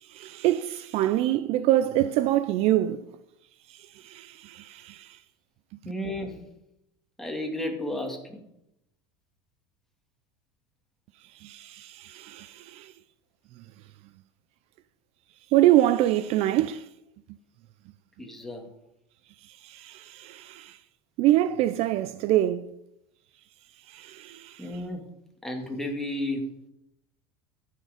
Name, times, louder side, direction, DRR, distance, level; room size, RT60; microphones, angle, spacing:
voice 1, 0.0-3.1 3.7-5.2 11.4-12.9 15.5-16.9 19.5-20.8 21.2-22.7 23.9-24.8, right 14 dB, 50° right, 0.4 m, -25 dB
voice 2, 5.9-6.4 7.2-8.4 18.2-18.6 24.6-25.0 25.4-26.5, left 1 dB, 5° left, 2.1 m, -32 dB
14.5 x 6.6 x 5.0 m
supercardioid pair, 130°, 14 cm